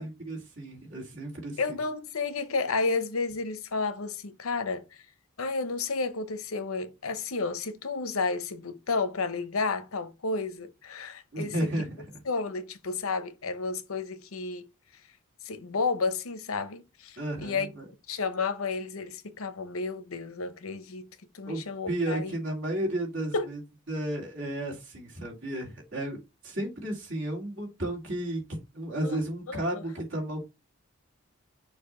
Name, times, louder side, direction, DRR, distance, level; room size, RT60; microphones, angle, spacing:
voice 1, 0.0-1.8 11.3-12.0 17.2-17.9 21.5-21.6 21.9-23.6 23.9-26.2 26.4-30.4, right 1 dB, 60° right, 2.4 m, -33 dB
voice 2, 1.6-5.0 5.4-11.7 12.2-14.7 15.4-17.7 18.1-21.1 21.3-22.3 23.3-23.5 29.0-29.2 29.5-29.8, left 4 dB, 85° left, 0.8 m, -31 dB
6.5 x 2.7 x 5.4 m
head